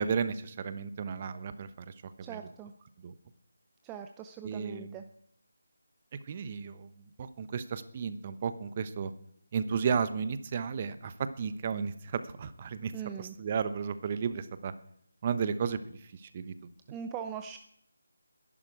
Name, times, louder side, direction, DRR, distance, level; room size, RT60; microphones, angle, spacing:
voice 1, 0.0-2.4 3.0-3.1 4.4-5.0 6.3-9.1 9.5-12.9 13.2-14.7 15.2-16.5, right 6 dB, 30° right, 12 dB, 1.0 m, -33 dB
voice 2, 2.2-2.7 3.8-5.0 12.9-13.4 16.9-17.6, right 8 dB, 15° right, 6 dB, 0.6 m, -41 dB
21.0 x 11.5 x 4.8 m, 0.72 s
figure-of-eight pair, 155°, 0 cm